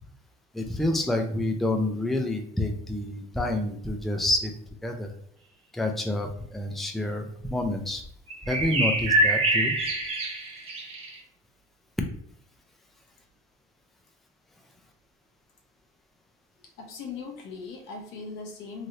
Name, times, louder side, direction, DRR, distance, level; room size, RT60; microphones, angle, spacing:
voice 1, 0.5-4.5 4.8-5.1 5.7-8.0 8.5-9.7, left 1 dB, ahead, 3 dB, 0.4 m, -28 dB
sound 1, 8.3-11.2, right 1 dB, 35° right, 0.8 m, -25 dB
voice 2, 16.8-18.9, left 4 dB, 80° left, 2 dB, 0.8 m, -39 dB
3.1 x 2.6 x 2.6 m, 0.66 s
cardioid pair, 110°, 18 cm